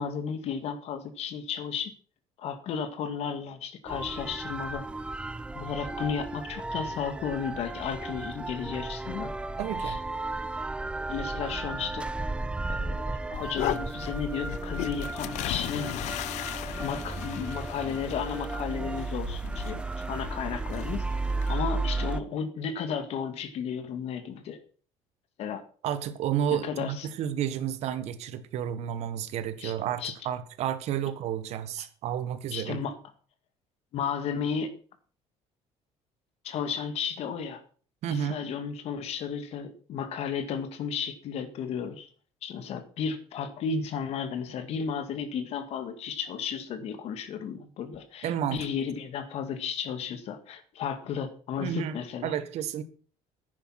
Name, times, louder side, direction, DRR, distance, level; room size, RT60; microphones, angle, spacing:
voice 1, 0.0-1.9 2.4-4.9 5.5-9.3 9.8-10.0 11.1-12.1 12.7-13.0 13.3-16.2 16.8-21.0 21.5-24.6 25.4-25.6 26.5-27.1 29.6-30.1 31.8-31.9 32.5-33.0 33.9-34.7 36.4-37.6 38.1-42.1 42.4-52.3, left 7 dB, 60° left, 10 dB, 2.1 m, -34 dB
sound 1, 3.9-22.2, right 2 dB, 10° right, 0.6 m, -34 dB
voice 2, 9.6-10.0 25.8-32.8 38.0-38.4 48.2-48.6 51.6-52.8, right 9 dB, 65° right, 12 dB, 1.5 m, -31 dB
sound 2, 13.3-21.6, left 14 dB, 80° left, 0.7 m, -37 dB
10.5 x 9.6 x 5.9 m, 0.41 s
cardioid pair, 130°, 12 cm